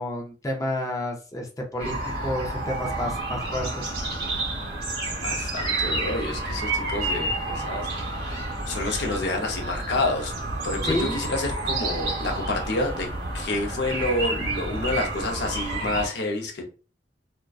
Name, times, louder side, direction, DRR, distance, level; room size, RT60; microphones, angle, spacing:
voice 1, 0.0-2.0 2.2-3.9 10.8-11.3, left 1 dB, 20° left, 0 dB, 0.5 m, -30 dB
sound 1, 1.8-16.1, right 2 dB, 65° right, 1.0 m, -30 dB
voice 2, 5.2-10.3 10.6-13.1 13.3-16.6, left 2 dB, 70° left, 2 dB, 0.6 m, -29 dB
2.5 x 2.2 x 2.3 m, 0.36 s
head